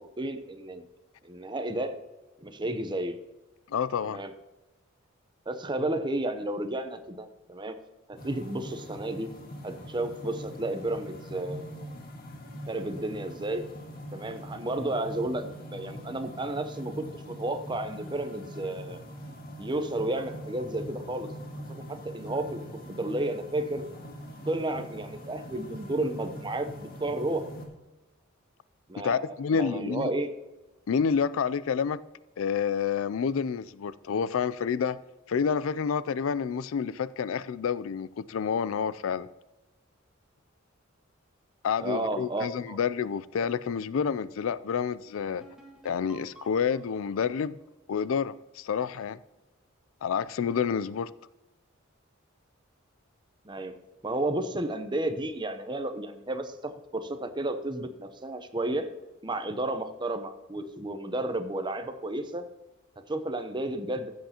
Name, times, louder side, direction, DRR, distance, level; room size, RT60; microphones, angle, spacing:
voice 1, 0.2-0.8 1.2-2.0 2.4-3.2 4.1-4.3 5.5-7.7 8.1-9.3 9.6-11.9 12.7-13.6 14.1-19.0 19.6-21.3 21.7-22.6 22.9-23.8 24.5-27.5 28.9-30.3 41.8-42.8 53.4-53.7 54.0-58.9 59.2-62.4 63.1-64.1, right 1 dB, 25° right, 0.8 m, -32 dB
voice 2, 3.7-4.2 29.0-30.1 30.9-32.0 32.4-35.0 35.3-39.3 41.6-45.4 45.8-47.6 47.9-49.2 50.0-51.1, left 6 dB, 75° left, 0.4 m, -29 dB
sound 1, 8.2-27.7, equal, 45° left, 1.8 m, -42 dB
sound 2, 45.4-49.0, right 1 dB, 5° right, 1.8 m, -54 dB
15.5 x 7.9 x 2.9 m
head